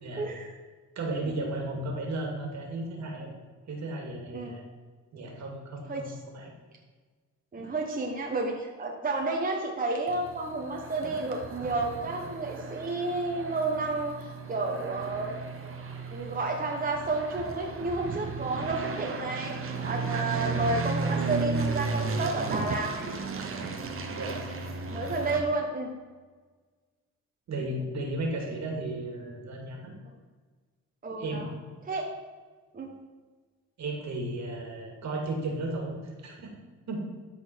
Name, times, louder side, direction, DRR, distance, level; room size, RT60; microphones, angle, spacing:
voice 1, 0.2-0.5 1.2-1.3 4.3-4.5 5.9-6.1 7.5-15.7 16.1-19.6 19.8-23.1 24.9-25.9 31.0-31.5 31.9-32.1 32.7-32.9, right 2 dB, 30° right, 0 dB, 1.2 m, -31 dB
voice 2, 1.0-3.3 3.7-4.6 5.1-6.5 7.6-7.7 11.0-11.1 24.2-24.4 27.5-29.9 31.2-31.5 33.8-36.0 36.2-36.5 36.9-37.0, right 2 dB, 65° right, 1 dB, 2.4 m, -34 dB
sound 1, 10.1-25.4, right 4 dB, 45° right, 1.3 m, -34 dB
13.0 x 4.3 x 4.6 m, 1.4 s
cardioid pair, 90°, 30 cm